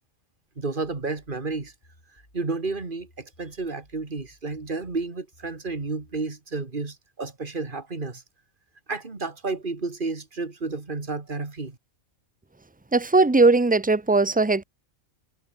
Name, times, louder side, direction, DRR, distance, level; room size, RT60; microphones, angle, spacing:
voice 1, 0.6-1.7 2.3-8.2 8.9-11.8, right 3 dB, 40° right, 2.5 m, -31 dB
sound 1, 1.5-6.3, left 1 dB, 40° left, 6.6 m, -59 dB
voice 2, 12.9-14.6, right 3 dB, 10° right, 0.4 m, -19 dB
omnidirectional pair, 1.4 m